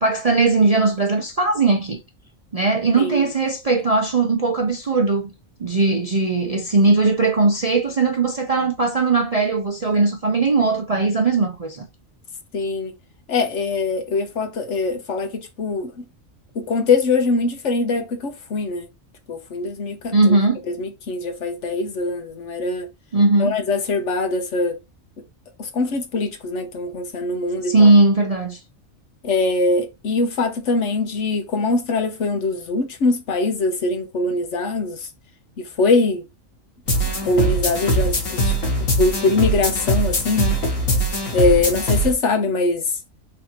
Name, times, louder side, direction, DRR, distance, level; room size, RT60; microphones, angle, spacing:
voice 1, 0.0-2.0 2.5-5.3 5.6-11.9 20.1-20.6 23.1-23.6 27.6-28.6, right 3 dB, 45° right, 0.5 m, -18 dB
voice 2, 3.0-3.3 12.5-12.9 13.3-15.9 16.5-18.9 19.3-20.3 20.7-22.9 23.4-24.8 25.6-27.9 29.2-35.1 35.6-36.3 37.2-38.5 39.0-40.6 41.3-42.9, left 3 dB, 65° left, 1.2 m, -22 dB
sound 1, 36.9-42.1, equal, 85° left, 1.9 m, -21 dB
4.1 x 2.7 x 4.3 m
omnidirectional pair, 1.4 m